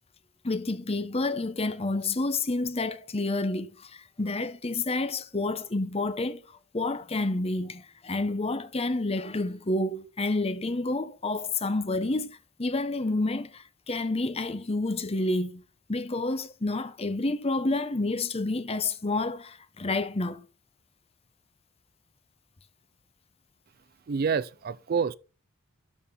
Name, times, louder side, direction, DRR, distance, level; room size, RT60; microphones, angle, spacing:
voice 1, 0.4-15.6 15.9-20.5, left 2 dB, 25° left, 0.8 m, -29 dB
voice 2, 24.1-25.2, right 6 dB, 40° right, 0.4 m, -27 dB
12.5 x 4.3 x 5.2 m
head